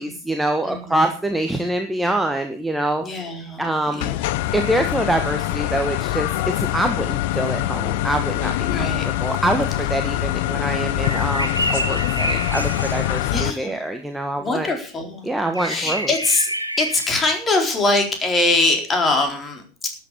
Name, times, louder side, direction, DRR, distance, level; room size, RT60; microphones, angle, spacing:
voice 1, 0.0-4.2 4.5-6.3 6.6-14.7 15.2-16.1, right 1 dB, 5° right, 5 dB, 1.3 m, -25 dB
voice 2, 0.6-1.0 3.0-3.6 3.9-4.3 8.6-9.0 13.3-13.7 14.4-15.2 15.6-16.5 16.8-19.9, left 2 dB, 20° left, 3 dB, 4.1 m, -22 dB
sound 1, 4.0-13.5, left 15 dB, 50° left, 0.7 m, -24 dB
sound 2, 9.0-9.1 11.0-13.4 15.5-17.1, right 1 dB, 90° right, 1.6 m, -28 dB
12.5 x 9.1 x 6.9 m, 0.41 s
figure-of-eight pair, 90°, 0 cm